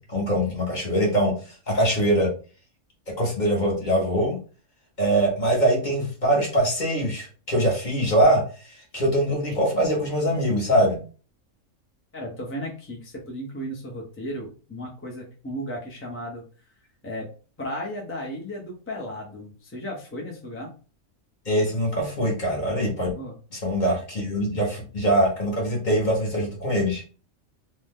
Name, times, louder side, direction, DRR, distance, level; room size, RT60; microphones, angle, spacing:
voice 1, 0.0-1.3 1.7-2.3 3.2-4.4 5.0-8.4 8.9-11.0 21.5-23.1 23.6-27.0, right 1 dB, 40° left, -1 dB, 1.0 m, -23 dB
voice 2, 12.1-16.4 17.0-17.3 17.6-20.7 23.2-23.4, equal, 15° left, -2 dB, 0.5 m, -35 dB
2.7 x 2.2 x 3.5 m, 0.37 s
omnidirectional pair, 1.4 m